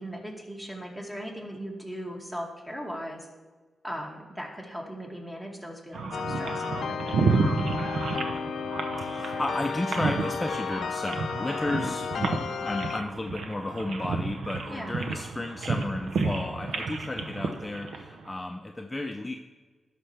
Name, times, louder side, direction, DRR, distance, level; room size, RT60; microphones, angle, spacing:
voice 1, 0.0-3.3 3.8-7.4 11.7-11.9 14.7-14.9, equal, 10° right, -1 dB, 2.4 m, -38 dB
sound 1, 5.9-18.3, right 4 dB, 80° right, 0.7 m, -31 dB
sound 2, 6.1-13.0, left 6 dB, 80° left, 0.4 m, -33 dB
voice 2, 9.0-19.3, left 2 dB, 20° left, 3 dB, 0.7 m, -33 dB
12.5 x 5.9 x 3.4 m, 1.3 s
cardioid pair, 55°, 0 cm